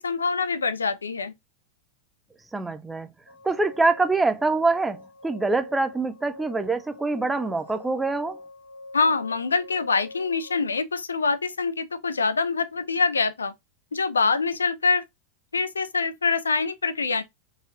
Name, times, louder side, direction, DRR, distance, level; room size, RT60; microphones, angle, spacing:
voice 1, 0.0-1.3 8.9-13.5 13.9-15.0 15.5-17.2, left 4 dB, 75° left, 0.5 m, -25 dB
voice 2, 2.5-3.1 3.4-8.4, right 3 dB, 10° right, 0.4 m, -25 dB
sound 1, 3.3-10.6, left 2 dB, 85° right, 1.5 m, -44 dB
3.9 x 2.5 x 2.8 m
figure-of-eight pair, 90°, 0 cm